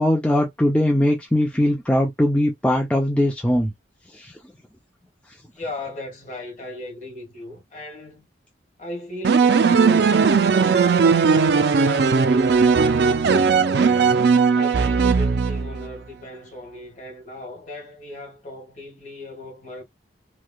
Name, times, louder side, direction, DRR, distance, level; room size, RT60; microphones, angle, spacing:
voice 1, 0.0-3.7 4.1-4.3, left 1 dB, 5° left, 0.4 m, -20 dB
voice 2, 5.5-8.3 8.8-14.2 14.5-19.8, left 2 dB, 40° left, 1.4 m, -37 dB
sound 1, 9.2-15.9, right 5 dB, 60° right, 0.4 m, -18 dB
3.1 x 2.8 x 2.2 m
head